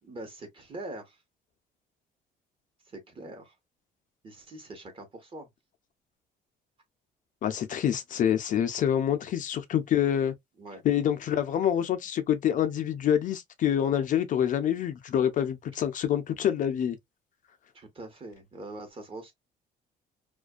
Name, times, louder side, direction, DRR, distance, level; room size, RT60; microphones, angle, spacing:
voice 1, 0.0-1.2 2.9-3.5 4.2-5.5 9.2-9.3 10.6-10.8 17.7-19.3, right 2 dB, 30° right, 1.1 m, -43 dB
voice 2, 7.4-10.3 10.8-17.0, left 9 dB, 50° left, 0.5 m, -26 dB
2.4 x 2.2 x 2.3 m
cardioid pair, 110°, 17 cm